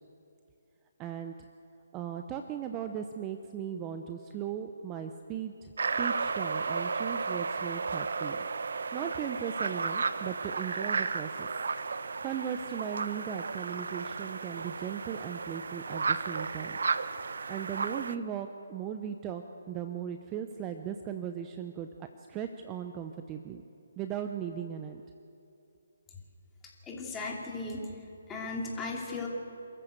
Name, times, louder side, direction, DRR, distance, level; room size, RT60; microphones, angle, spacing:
voice 1, 1.0-1.4 1.9-5.7 6.0-8.4 8.9-11.5 12.2-16.8 17.5-21.9 22.3-23.6 24.0-25.0, right 9 dB, 20° right, 7 dB, 0.8 m, -37 dB
sound 1, 5.8-18.2, right 4 dB, 70° right, 0.9 m, -33 dB
voice 2, 26.9-27.9 28.3-29.3, left 3 dB, 10° left, -2 dB, 3.2 m, -36 dB
27.0 x 14.0 x 8.0 m, 2.7 s
hypercardioid pair, 155°, 0 cm